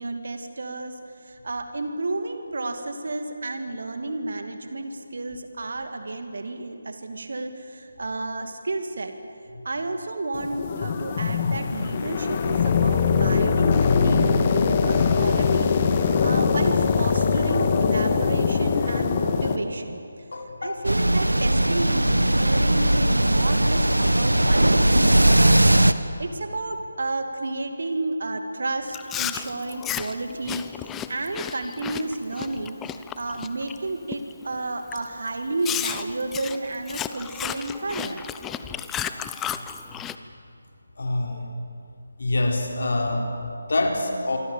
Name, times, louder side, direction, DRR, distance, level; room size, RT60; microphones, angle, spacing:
voice 1, 0.0-9.1 9.6-15.7 16.0-20.0 20.6-30.7 31.1-32.8 33.2-38.3, right 2 dB, 50° right, 6 dB, 2.4 m, -31 dB
sound 1, 10.3-19.6, left 5 dB, 25° left, 1.5 m, -22 dB
voice 2, 20.3-20.9 38.6-38.8 39.5-39.6 41.0-41.5 42.2-44.4, left 2 dB, 50° left, 2 dB, 4.1 m, -26 dB
sound 2, 20.8-25.9, right 1 dB, 80° right, 1.3 m, -19 dB
Chewing mastication, 28.9-33.8 34.1-34.4 34.9-35.0 35.6-40.2, left 10 dB, 10° left, 0.6 m, -33 dB
26.0 x 24.0 x 7.5 m, 2.6 s
figure-of-eight pair, 155°, 0 cm